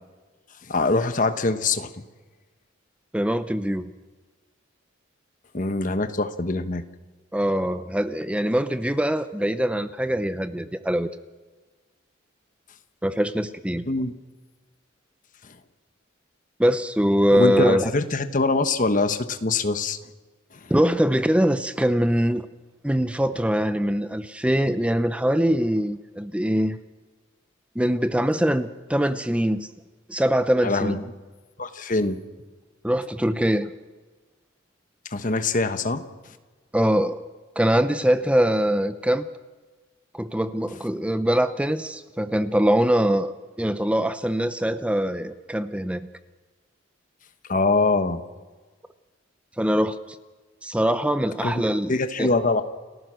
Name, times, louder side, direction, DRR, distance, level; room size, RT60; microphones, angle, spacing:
voice 1, 0.7-2.0 5.5-6.8 13.9-14.1 15.4-15.5 17.3-20.0 30.6-31.0 31.6-32.2 35.1-36.0 47.5-48.2 51.4-51.5 51.9-52.6, left 3 dB, 40° left, 9 dB, 1.2 m, -23 dB
voice 2, 3.1-3.9 7.3-11.1 13.0-13.8 16.6-17.9 20.7-22.5 22.8-26.8 27.8-29.7 30.1-31.0 32.8-33.7 36.7-37.2 37.6-39.3 40.1-43.3 43.6-46.0 49.6-50.0 50.6-52.3, equal, 5° right, 12 dB, 0.6 m, -23 dB
29.5 x 15.0 x 6.3 m, 1.3 s
head